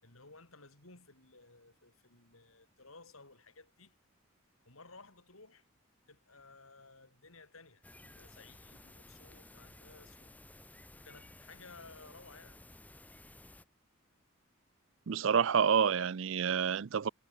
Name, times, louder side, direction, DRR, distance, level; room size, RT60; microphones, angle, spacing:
voice 1, 0.0-3.9 4.6-5.7 6.0-10.3 11.0-12.6, left 3 dB, 85° left, 6.8 m, -57 dB
sound 1, 7.8-13.6, left 1 dB, 5° left, 1.2 m, -55 dB
voice 2, 15.1-17.1, right 7 dB, 65° right, 0.5 m, -28 dB
head